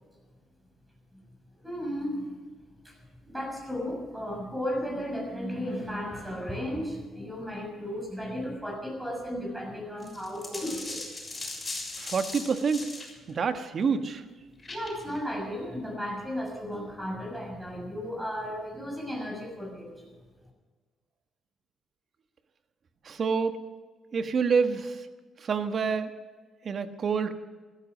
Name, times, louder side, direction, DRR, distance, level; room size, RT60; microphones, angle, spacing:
voice 1, 1.6-2.3 2.8-3.0 3.2-11.1 14.7-20.0, equal, 10° right, 1 dB, 6.2 m, -34 dB
sound 1, 10.0-13.1 14.6-15.2, left 2 dB, 30° left, 6.8 m, -38 dB
voice 2, 12.0-12.9 13.3-14.2 23.0-23.6 24.1-25.0 25.4-26.1 26.6-27.3, right 5 dB, 50° right, 9 dB, 1.4 m, -27 dB
15.5 x 14.0 x 6.3 m, 1.4 s
supercardioid pair, 70°, 0 cm